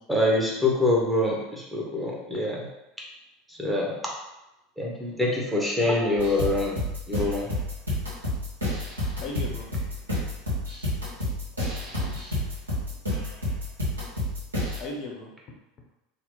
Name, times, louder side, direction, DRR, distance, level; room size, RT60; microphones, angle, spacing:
voice 1, 0.1-2.6 3.5-3.9 4.8-6.8 7.1-7.5, left 2 dB, 10° right, -3 dB, 0.8 m, -25 dB
sound 1, 6.2-14.8, left 1 dB, 85° right, 1.0 m, -30 dB
voice 2, 9.2-9.7 10.6-11.1 11.5-12.3 12.9-13.0 14.8-15.3, left 2 dB, 45° left, 0 dB, 0.5 m, -39 dB
2.9 x 2.0 x 3.5 m, 0.95 s
figure-of-eight pair, 75°, 0 cm